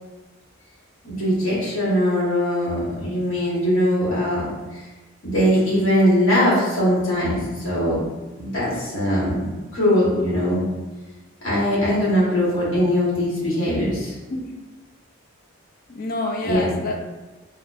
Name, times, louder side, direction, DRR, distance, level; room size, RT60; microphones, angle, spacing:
voice 1, 1.0-4.9 5.2-8.0 8.4-9.5 9.7-10.7 11.4-14.1 16.4-16.8, equal, 65° left, -8 dB, 1.4 m, -21 dB
voice 2, 14.3-14.6 15.9-17.0, left 2 dB, 45° left, 2 dB, 0.4 m, -28 dB
4.3 x 2.5 x 2.5 m, 1.2 s
head